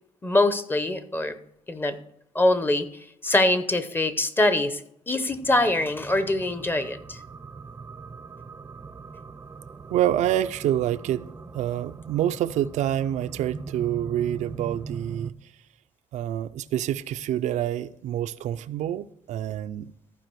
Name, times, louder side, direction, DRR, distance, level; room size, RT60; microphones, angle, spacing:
voice 1, 0.2-1.4 1.7-2.0 2.3-4.8 5.1-7.2, left 2 dB, 15° left, 0.7 m, -23 dB
sound 1, 5.3-15.3, right 4 dB, 20° right, 0.4 m, -41 dB
voice 2, 9.9-11.3 11.5-15.5 16.1-19.9, right 11 dB, 85° right, 0.4 m, -27 dB
14.5 x 4.9 x 4.6 m
cardioid pair, 135°, 12 cm